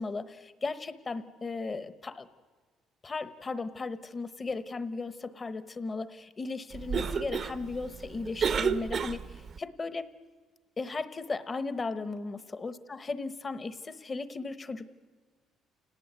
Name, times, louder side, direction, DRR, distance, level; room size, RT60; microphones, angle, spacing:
voice 1, 0.0-2.3 3.0-10.1 10.8-14.9, left 3 dB, 20° left, 13 dB, 1.0 m, -36 dB
Cough, 6.7-9.6, right 6 dB, 35° right, 0.8 m, -32 dB
29.0 x 18.5 x 9.4 m, 1.5 s
cardioid pair, 165°, 0 cm